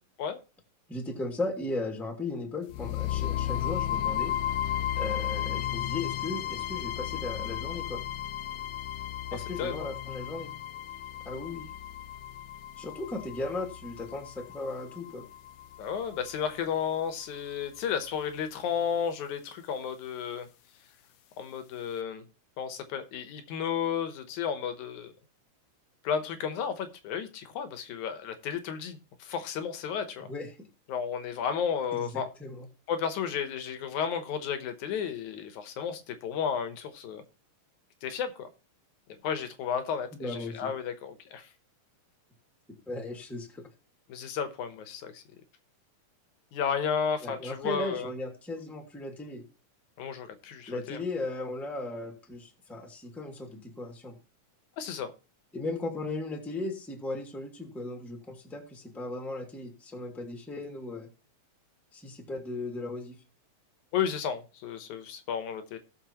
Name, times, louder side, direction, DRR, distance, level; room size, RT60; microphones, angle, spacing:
voice 1, 0.9-4.3 5.0-8.0 9.3-10.5 11.2-11.7 12.8-15.3 30.3-30.5 31.9-32.6 40.1-40.7 42.9-43.7 47.2-49.4 50.7-54.2 55.5-61.1 61.9-63.2, left 2 dB, ahead, 2 dB, 1.4 m, -36 dB
sound 1, 2.7-16.7, left 12 dB, 85° left, 2.3 m, -34 dB
voice 2, 9.6-9.9 15.8-20.5 21.4-22.2 22.6-25.1 26.0-30.3 30.9-32.3 32.9-37.2 38.0-38.5 39.2-41.5 44.1-45.2 46.5-48.1 50.0-51.0 54.8-55.1 63.9-65.8, left 7 dB, 70° left, 9 dB, 2.3 m, -33 dB
17.5 x 6.6 x 3.0 m, 0.33 s
omnidirectional pair, 3.9 m